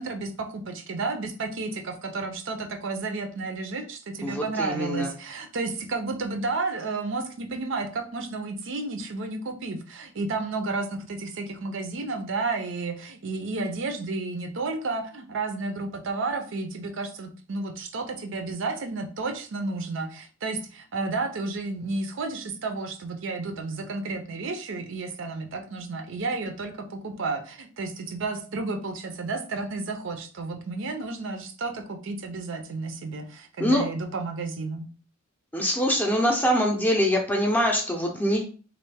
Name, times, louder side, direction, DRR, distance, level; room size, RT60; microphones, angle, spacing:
voice 1, 0.0-34.9, right 3 dB, 60° right, 6 dB, 0.5 m, -32 dB
voice 2, 4.2-5.1 33.6-33.8 35.5-38.4, equal, 10° left, 1 dB, 0.6 m, -24 dB
3.1 x 2.4 x 3.4 m, 0.39 s
head